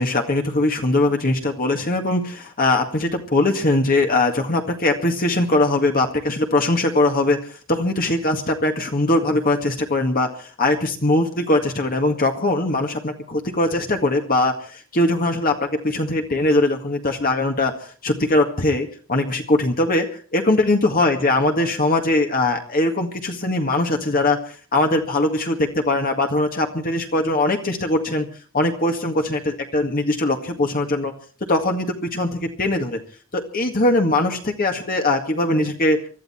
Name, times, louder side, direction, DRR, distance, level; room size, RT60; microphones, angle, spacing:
voice 1, 0.0-7.4 7.7-20.1 20.3-28.3 28.5-31.1 31.5-33.0 33.3-36.0, left 2 dB, 45° left, 3 dB, 1.9 m, -21 dB
24.0 x 13.5 x 4.4 m, 0.40 s
head